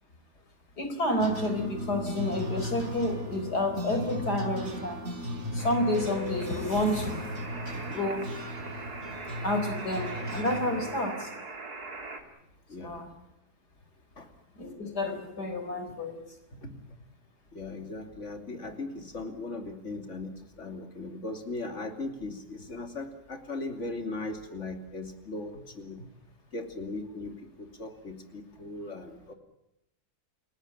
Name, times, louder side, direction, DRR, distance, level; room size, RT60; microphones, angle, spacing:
voice 1, 0.8-5.0 5.5-7.3 7.9-8.3 9.4-11.3 12.8-13.1 14.6-16.2, left 1 dB, 80° left, 7 dB, 4.8 m, -30 dB
sound 1, 1.2-10.9, equal, 45° right, 5.4 m, -37 dB
sound 2, 5.6-12.2, right 1 dB, 70° right, 3.4 m, -40 dB
voice 2, 12.7-13.1 14.2-14.3 16.6-16.7 17.5-20.3 20.6-26.0 26.5-29.3, left 2 dB, 45° left, 6 dB, 3.2 m, -38 dB
29.5 x 18.0 x 8.7 m, 0.84 s
omnidirectional pair, 1.7 m